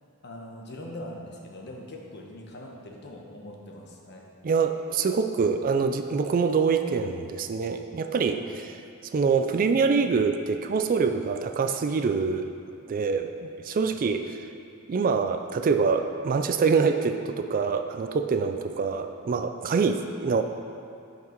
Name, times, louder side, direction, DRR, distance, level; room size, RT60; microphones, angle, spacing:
voice 1, 0.2-4.3 8.3-8.4 13.7-14.0, left 1 dB, 50° left, -1 dB, 1.1 m, -42 dB
voice 2, 4.4-8.4 9.1-12.4 12.9-14.4 14.9-20.4, right 5 dB, 40° right, 7 dB, 0.3 m, -25 dB
8.4 x 5.9 x 4.5 m, 2.5 s
head